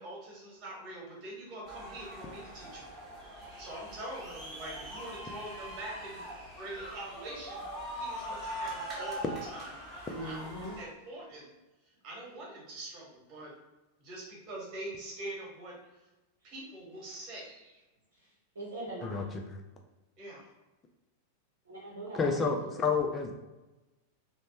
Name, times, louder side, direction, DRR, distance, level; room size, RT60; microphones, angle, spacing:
voice 1, 0.0-2.9 3.6-7.6 7.9-9.2 9.5-9.7 10.1-10.5 10.8-11.5 12.0-13.5 14.0-15.7 16.4-17.8 20.2-20.5, right 1 dB, 35° right, -4 dB, 1.3 m, -44 dB
sound 1, 1.6-10.8, right 1 dB, 15° right, 1.1 m, -42 dB
voice 2, 10.1-10.8 16.4-16.5 18.1-19.4 21.6-22.8, right 1 dB, 70° right, -6 dB, 0.7 m, -42 dB
voice 3, 22.1-23.3, left 5 dB, 20° left, 3 dB, 0.4 m, -29 dB
3.1 x 2.1 x 2.9 m, 1.1 s
figure-of-eight pair, 90°, 0 cm